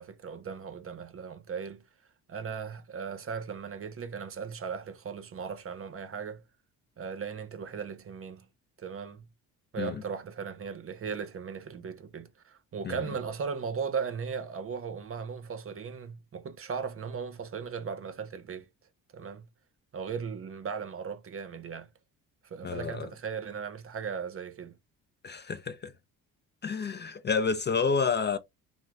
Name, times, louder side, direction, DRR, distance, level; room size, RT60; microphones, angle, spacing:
voice 1, 0.0-1.8 2.3-6.4 7.0-8.5 8.8-9.3 9.7-18.7 19.1-19.5 19.9-21.9 22.4-24.8, right 6 dB, 40° right, 0.7 m, -37 dB
voice 2, 22.6-23.1 25.2-25.9 26.6-28.4, left 5 dB, 30° left, 0.4 m, -29 dB
2.9 x 2.2 x 3.5 m
supercardioid pair, 75°, 36 cm